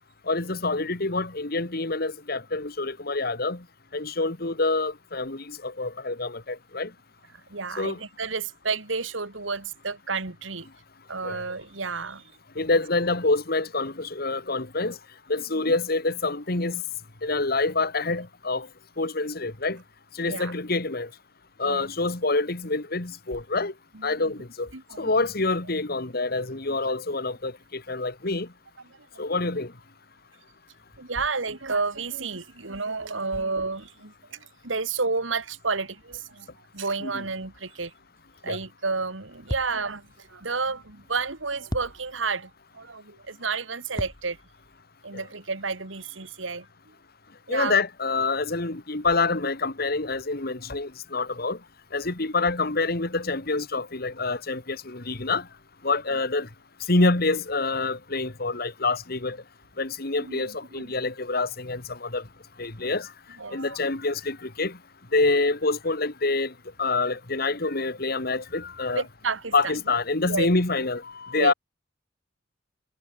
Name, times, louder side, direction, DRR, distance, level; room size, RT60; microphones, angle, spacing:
voice 1, 0.3-3.6 3.9-6.9 7.8-8.0 11.2-11.4 12.6-15.0 15.3-16.8 17.2-18.7 19.0-19.8 20.1-21.1 21.6-23.7 24.0-24.7 25.0-28.5 29.2-29.7 37.0-37.2 38.5-38.6 45.1-45.2 47.5-51.6 51.9-55.5 55.8-56.5 56.9-59.4 59.8-62.2 62.6-63.1 63.5-64.8 65.1-66.5 66.8-69.0 69.5-71.5, left 3 dB, 50° left, 2.0 m, -26 dB
voice 2, 7.5-10.7 11.1-12.3 15.5-15.7 20.3-20.5 21.6-21.9 23.9-24.1 24.7-25.2 26.7-27.0 28.9-29.1 31.0-36.5 36.7-37.9 38.4-44.4 45.0-46.9 47.5-47.8 60.2-61.0 63.4-63.8 68.9-69.7 70.2-70.5 71.3-71.5, right 4 dB, 90° right, 2.4 m, -31 dB
sound 1, 39.5-40.1 41.7-42.5 43.9-44.8, equal, 20° left, 2.1 m, -36 dB
head